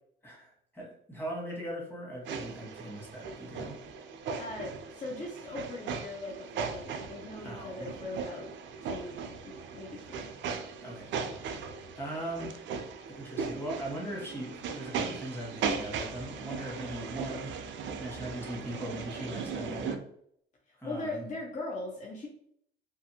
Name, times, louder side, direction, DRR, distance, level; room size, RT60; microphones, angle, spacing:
voice 1, 0.2-3.8 7.4-7.9 10.8-11.2 12.0-12.5 13.1-17.5 18.0-20.0 20.8-21.3, right 1 dB, 10° left, -3 dB, 1.2 m, -39 dB
sound 1, 2.3-20.0, right 5 dB, 70° right, 0.4 m, -38 dB
voice 2, 4.4-8.5 8.8-10.3 20.7-22.3, left 2 dB, 40° left, -2 dB, 0.6 m, -40 dB
2.5 x 2.5 x 2.7 m, 0.67 s
cardioid pair, 90°, 20 cm